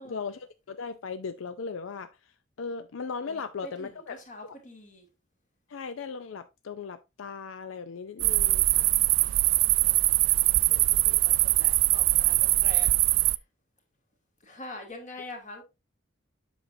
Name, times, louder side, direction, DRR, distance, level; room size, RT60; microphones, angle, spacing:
voice 1, 0.0-2.1 2.6-4.1 5.7-8.9, left 5 dB, 80° left, 0.5 m, -37 dB
voice 2, 3.2-5.1 8.6-13.4 14.4-15.6, left 1 dB, 40° left, 2.2 m, -46 dB
sound 1, 8.2-13.4, right 19 dB, 75° right, 0.3 m, -22 dB
7.7 x 6.1 x 2.6 m
head